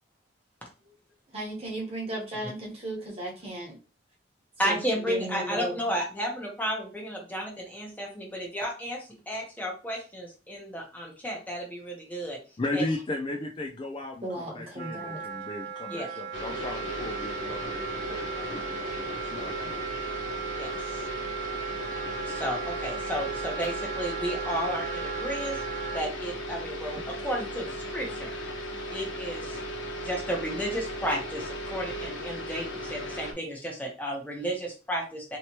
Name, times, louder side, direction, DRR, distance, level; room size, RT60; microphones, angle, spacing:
voice 1, 1.3-3.8 4.6-4.8 5.1-5.8 14.2-15.2, right 1 dB, 35° right, -2 dB, 1.2 m, -35 dB
voice 2, 4.6-12.4 12.7-12.9 15.9-16.1 20.6-21.0 22.3-25.6 25.9-28.4 28.9-29.6 29.9-35.4, equal, 10° left, -1 dB, 0.9 m, -33 dB
voice 3, 12.6-18.5 19.2-19.7, left 2 dB, 25° left, 1 dB, 0.4 m, -35 dB
Wind instrument woodwind instrument, 14.8-26.1, right 8 dB, 55° right, 0.4 m, -37 dB
sound 1, 16.3-33.3, equal, 75° left, 1.1 m, -36 dB
3.1 x 3.0 x 2.9 m, 0.34 s
head